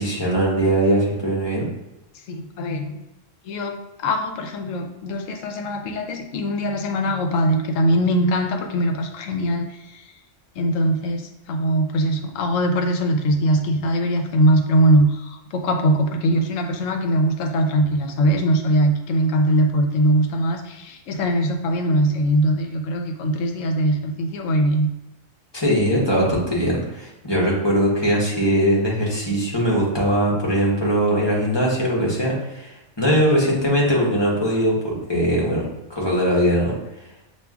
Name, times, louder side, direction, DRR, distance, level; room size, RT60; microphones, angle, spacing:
voice 1, 0.0-1.7 25.5-36.8, equal, 20° left, -4 dB, 1.0 m, -21 dB
voice 2, 2.1-3.0 3.4-3.7 4.0-10.1 10.6-24.9, right 1 dB, 85° left, 5 dB, 1.0 m, -21 dB
6.9 x 2.5 x 2.3 m, 0.90 s
omnidirectional pair, 1.3 m